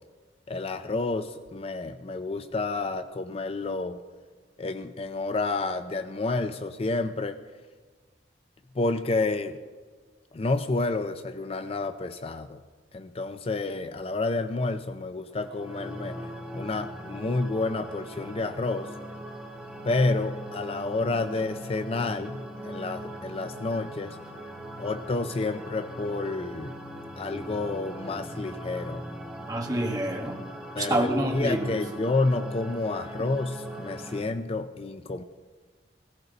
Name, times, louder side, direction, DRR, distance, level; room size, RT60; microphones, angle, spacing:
voice 1, 0.5-4.0 4.6-7.4 8.7-9.6 10.3-12.6 12.9-16.2 16.5-18.9 19.8-24.2 24.8-26.8 27.2-29.0 30.8-35.2, left 3 dB, 35° left, 10 dB, 0.4 m, -29 dB
sound 1, 15.3-34.2, equal, 5° right, 2.3 m, -40 dB
voice 2, 29.5-30.4 30.8-31.7, right 1 dB, 20° right, 1 dB, 1.6 m, -27 dB
17.0 x 16.0 x 4.0 m, 1.5 s
head